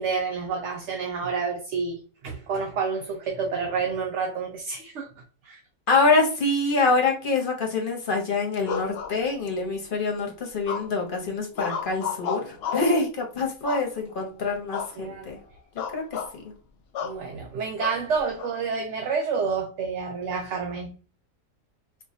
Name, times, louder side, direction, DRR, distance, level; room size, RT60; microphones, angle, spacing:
voice 1, 0.0-5.1 5.4-5.6 15.0-15.3 17.0-20.9, right 5 dB, 65° right, 0.8 m, -29 dB
voice 2, 5.9-15.4 15.9-16.0 16.3-16.4, left 3 dB, 45° left, 0.9 m, -25 dB
sound 1, 8.6-9.7 10.7-11.1 11.6-13.0 13.6-14.2 14.7-15.0 15.3-15.4 15.8-16.3 16.9-17.2 17.8-18.5, left 7 dB, 65° left, 0.6 m, -32 dB
4.5 x 2.2 x 2.7 m
omnidirectional pair, 1.5 m